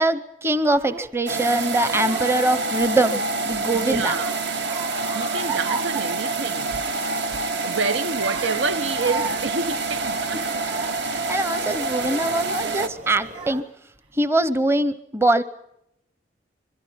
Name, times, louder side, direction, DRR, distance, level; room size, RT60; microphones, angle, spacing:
voice 1, 0.0-4.2 11.0-13.7 14.1-15.4, right 2 dB, 15° right, 0.8 m, -23 dB
Child speech kid speaking / Crying sobbing, 0.6-1.2 1.8-2.5 2.8-3.6 4.1-6.9 7.3-7.5 8.0-11.2 11.8-12.2 12.9-13.0 13.3-14.0, right 5 dB, 30° right, 1.4 m, -37 dB
sound 1, 1.3-12.9, right 3 dB, 65° right, 1.3 m, -27 dB
voice 2, 3.7-4.3 5.1-6.8 7.6-10.6, right 4 dB, 85° right, 0.9 m, -28 dB
sound 2, 8.4-13.6, right 1 dB, 45° right, 6.2 m, -43 dB
26.5 x 23.0 x 5.8 m
head